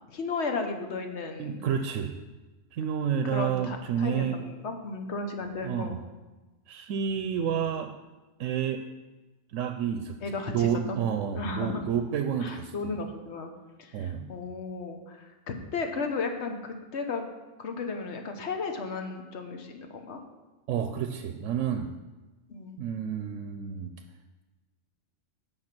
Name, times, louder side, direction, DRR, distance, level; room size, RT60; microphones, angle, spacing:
voice 1, 0.1-1.6 3.3-6.0 10.2-11.0 11.3-11.8 12.4-13.5 13.8-17.2 17.6-20.2 22.5-22.8, left 4 dB, 65° left, 5 dB, 1.3 m, -34 dB
voice 2, 1.4-2.2 2.7-4.4 5.6-6.0 6.7-7.9 8.4-8.8 9.5-10.2 10.5-13.1 13.9-14.3 20.7-21.9 22.8-23.9, right 8 dB, 90° right, 7 dB, 1.0 m, -30 dB
9.0 x 5.7 x 5.9 m, 1.2 s
omnidirectional pair, 1.3 m